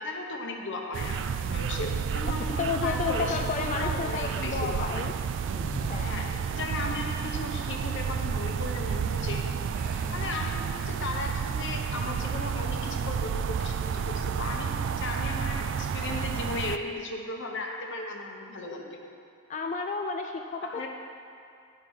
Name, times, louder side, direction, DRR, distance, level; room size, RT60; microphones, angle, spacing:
voice 1, 0.0-5.1 6.0-9.7 10.1-19.0 20.6-20.9, left 2 dB, 60° left, 2 dB, 0.9 m, -36 dB
sound 1, 0.9-16.8, right 7 dB, 60° right, 0.3 m, -31 dB
sound 2, 1.8-2.4 5.4-6.5 9.7-11.2 11.6-11.8 13.9-14.4, right 1 dB, 45° right, 1.2 m, -43 dB
voice 2, 2.6-5.1 5.9-6.3 10.1-10.3 19.5-20.9, left 4 dB, 35° left, 3 dB, 0.3 m, -32 dB
10.5 x 5.7 x 4.8 m, 2.5 s
head